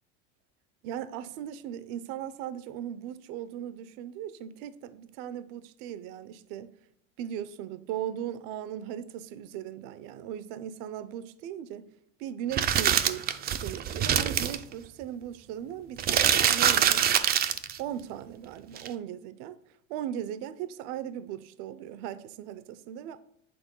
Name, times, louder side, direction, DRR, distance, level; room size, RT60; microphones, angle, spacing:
voice 1, 0.8-6.7 7.2-11.9 12.2-17.2 17.8-19.6 19.9-23.2, right 10 dB, 65° right, 0.7 m, -38 dB
sound 1, 12.5-14.6 16.0-17.8 18.8-18.9, right 9 dB, 25° right, 0.4 m, -24 dB
8.7 x 3.5 x 5.3 m
supercardioid pair, 120°, 39 cm